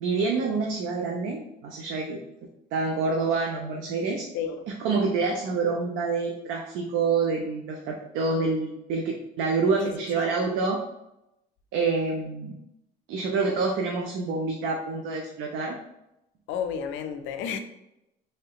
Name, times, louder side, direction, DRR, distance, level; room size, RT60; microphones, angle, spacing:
voice 1, 0.0-2.2 2.7-4.2 4.8-10.8 11.7-12.6 13.1-15.8, right 4 dB, 75° right, 0.5 m, -27 dB
voice 2, 9.8-10.3 16.5-17.6, left 7 dB, 75° left, 0.4 m, -32 dB
3.3 x 2.8 x 2.4 m
cardioid pair, 120°, 19 cm